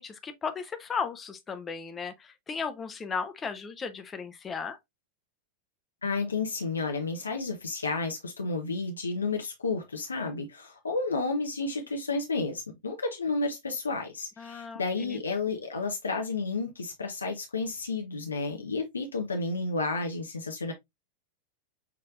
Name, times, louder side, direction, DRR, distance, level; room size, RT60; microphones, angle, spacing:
voice 1, 0.0-4.8 14.4-15.2, left 5 dB, 20° left, 0.8 m, -35 dB
voice 2, 6.0-20.7, left 3 dB, 75° left, 0.7 m, -31 dB
5.9 x 3.2 x 2.4 m
figure-of-eight pair, 90°, 0 cm